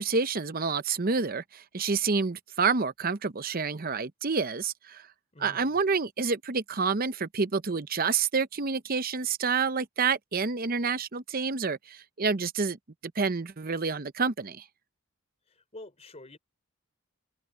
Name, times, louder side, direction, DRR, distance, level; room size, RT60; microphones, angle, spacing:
voice 1, 0.0-5.1 5.4-12.8 13.0-14.6, right 5 dB, 40° right, 0.8 m, -28 dB
voice 2, 5.3-5.7 15.5-16.4, left 2 dB, 30° left, 4.2 m, -47 dB
head